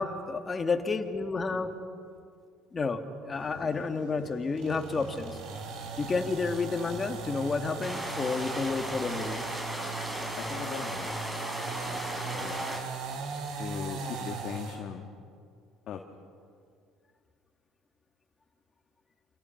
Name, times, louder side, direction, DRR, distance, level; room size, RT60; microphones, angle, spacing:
voice 1, 0.0-1.7 2.7-5.4 6.0-9.5, left 4 dB, 30° left, 6 dB, 2.4 m, -30 dB
Thunder, 3.3-8.5, left 4 dB, 80° left, 3.4 m, -49 dB
sound 1, 4.6-14.8, right 5 dB, 65° right, 4.7 m, -38 dB
sound 2, 7.8-12.8, equal, 5° right, 6.3 m, -37 dB
voice 2, 10.3-11.1 11.7-12.7 13.6-15.1 15.9-16.0, left 8 dB, 55° left, 3 dB, 2.0 m, -40 dB
28.5 x 26.5 x 6.1 m, 2.3 s
hypercardioid pair, 65°, 0 cm